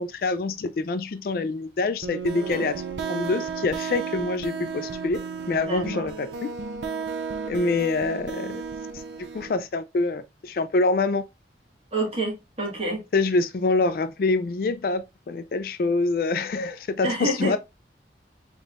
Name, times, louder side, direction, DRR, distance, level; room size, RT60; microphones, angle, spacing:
voice 1, 0.0-2.8 3.1-5.2 5.5-6.5 7.5-8.6 9.3-11.2 13.1-17.6, left 3 dB, 55° left, 0.3 m, -25 dB
sound 1, 2.0-9.6, right 5 dB, 85° right, 0.4 m, -33 dB
voice 2, 2.3-2.6 5.6-6.0 11.9-13.0 17.0-17.6, right 1 dB, 35° right, 1.6 m, -28 dB
4.0 x 3.6 x 2.4 m
head